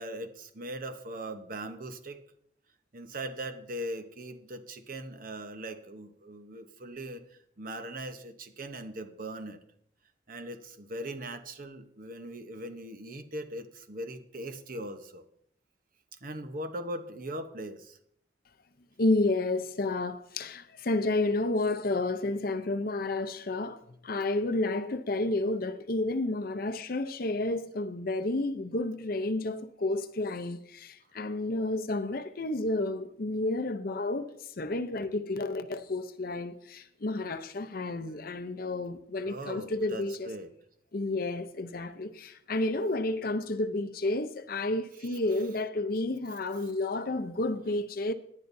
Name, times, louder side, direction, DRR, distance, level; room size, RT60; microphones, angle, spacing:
voice 1, 0.0-2.2 2.9-9.6 10.3-15.2 16.2-18.0 39.3-40.5 45.0-45.2, right 1 dB, 50° right, 1.0 m, -40 dB
voice 2, 19.0-40.3 40.9-48.1, left 2 dB, 50° left, 0.7 m, -31 dB
18.0 x 10.5 x 2.7 m
head